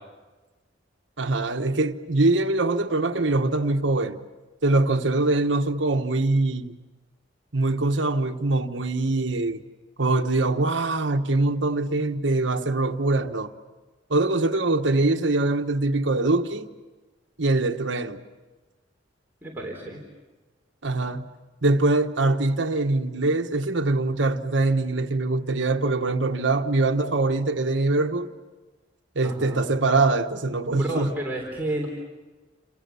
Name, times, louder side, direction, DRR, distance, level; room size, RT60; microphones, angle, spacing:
voice 1, 1.2-4.2 4.6-6.7 7.5-9.6 10.0-13.5 14.1-16.7 17.4-18.2 20.8-21.2 21.6-28.3 29.1-31.1, right 2 dB, 70° right, 1.4 m, -23 dB
voice 2, 19.4-20.0 29.2-29.6 30.7-31.9, right 1 dB, 10° right, 3.5 m, -31 dB
30.0 x 27.5 x 7.0 m
head